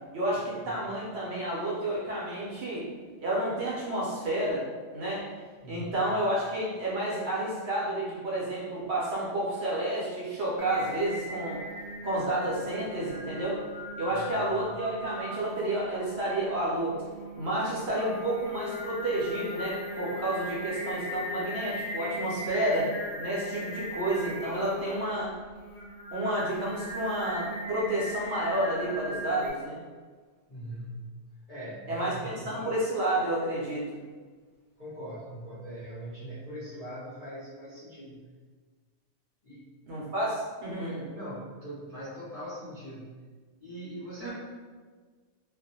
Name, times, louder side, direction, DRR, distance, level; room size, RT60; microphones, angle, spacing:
voice 1, 0.1-2.9 3.2-4.6 4.9-5.2 5.7-11.6 12.0-13.6 14.0-16.9 17.4-22.9 23.2-25.3 26.1-29.8 31.9-34.0 39.9-41.1 44.2-44.3, right 1 dB, 65° right, -6 dB, 0.8 m, -30 dB
voice 2, 5.6-6.1 14.1-14.6 30.5-31.2 31.5-32.6 34.8-38.3 39.4-39.7 41.0-43.2 43.6-44.3, equal, 40° left, -12 dB, 0.6 m, -41 dB
Singing, 10.6-29.5, left 1 dB, 60° left, 0.9 m, -39 dB
2.3 x 2.1 x 2.7 m, 1.5 s
omnidirectional pair, 1.3 m